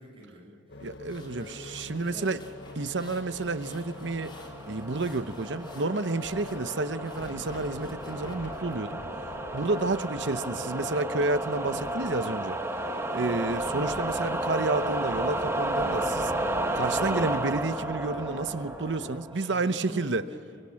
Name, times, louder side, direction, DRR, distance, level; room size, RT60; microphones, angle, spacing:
voice 1, 0.0-0.9 1.2-2.3 3.0-3.2 12.8-13.4 19.3-20.6, equal, 30° right, 7.9 m, -46 dB
sound 1, 0.7-19.2, left 2 dB, 70° left, 1.2 m, -44 dB
sound 2, 0.8-8.7, left 2 dB, 25° left, 4.6 m, -53 dB
voice 2, 0.8-2.4 2.7-4.4 4.7-9.0 9.5-12.6 13.1-20.3, right 3 dB, 75° right, 0.8 m, -30 dB
sound 3, 3.1-19.6, right 1 dB, 15° right, 1.3 m, -33 dB
23.5 x 23.0 x 8.7 m
head